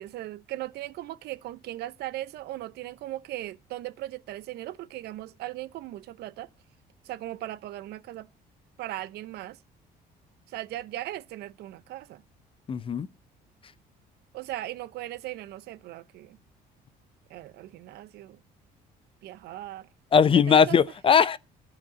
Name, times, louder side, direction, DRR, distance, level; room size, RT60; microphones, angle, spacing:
voice 1, 0.0-6.5 7.0-8.3 8.8-9.6 10.5-12.2 14.3-16.4 17.3-18.4 19.2-19.9 20.5-20.8, right 15 dB, 75° right, 0.7 m, -38 dB
voice 2, 12.7-13.1 20.1-21.4, left 6 dB, 30° left, 0.5 m, -19 dB
12.0 x 5.0 x 7.4 m
cardioid pair, 110°, 17 cm